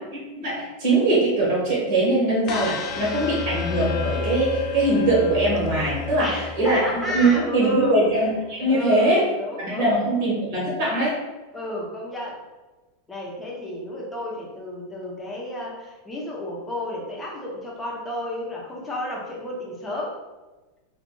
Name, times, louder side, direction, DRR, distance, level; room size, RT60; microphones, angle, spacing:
voice 1, 0.1-9.2 9.6-11.2, right 2 dB, 60° right, -6 dB, 1.3 m, -22 dB
sound 1, 2.5-8.5, left 4 dB, 40° left, 0.4 m, -32 dB
voice 2, 6.2-8.0 8.7-9.9 11.5-12.4 13.1-20.2, left 1 dB, 10° left, -4 dB, 0.9 m, -31 dB
2.5 x 2.4 x 3.8 m, 1.2 s
supercardioid pair, 130°, 0 cm